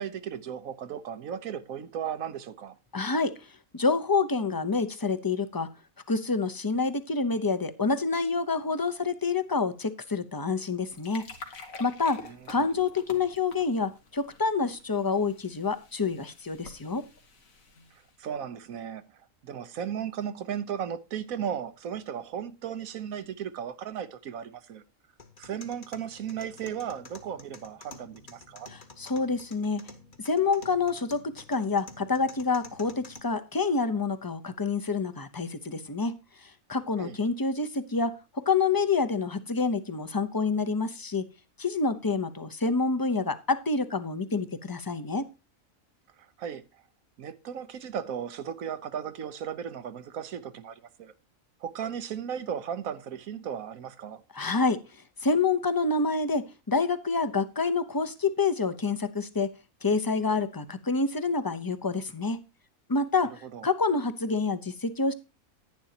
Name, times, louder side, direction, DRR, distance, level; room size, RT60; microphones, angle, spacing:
voice 1, 0.0-2.8 12.2-12.6 18.2-19.1 19.4-24.8 25.4-28.7 37.0-37.2 46.2-46.6 47.2-51.1 51.6-54.2 63.4-63.7, right 8 dB, 85° right, 1.3 m, -36 dB
voice 2, 2.9-3.4 3.7-5.7 6.1-11.3 11.8-12.2 12.5-17.0 28.7-29.8 30.2-36.2 36.7-41.3 41.6-45.2 54.3-54.8 55.2-59.5 59.8-62.4 62.9-63.3 63.6-65.1, left 4 dB, 25° left, 0.6 m, -27 dB
sound 1, 10.8-18.2, left 3 dB, 75° left, 2.0 m, -48 dB
sound 2, 25.2-33.2, left 3 dB, 40° left, 1.3 m, -50 dB
10.5 x 10.5 x 2.8 m
omnidirectional pair, 1.4 m